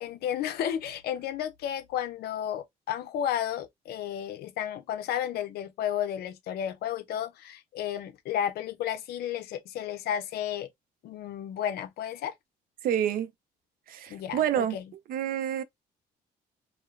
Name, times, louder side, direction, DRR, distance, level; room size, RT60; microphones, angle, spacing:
voice 1, 0.0-10.7 11.0-12.3 14.1-14.9, left 10 dB, 70° left, 0.5 m, -32 dB
voice 2, 12.8-13.3 13.9-14.8 15.1-15.6, right 10 dB, 60° right, 0.4 m, -28 dB
2.8 x 2.0 x 2.3 m
cardioid pair, 110°, 17 cm